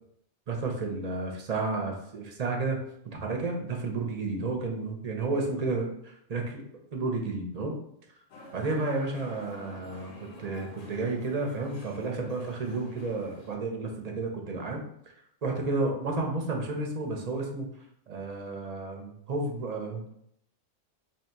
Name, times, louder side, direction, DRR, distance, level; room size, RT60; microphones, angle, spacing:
voice 1, 0.5-6.6 6.9-7.8 8.5-14.8 15.4-17.7 18.1-20.3, right 3 dB, 45° right, 1 dB, 0.5 m, -32 dB
sound 1, 8.3-13.5, left 2 dB, 75° left, 1.2 m, -49 dB
2.9 x 2.8 x 4.4 m, 0.73 s
omnidirectional pair, 1.3 m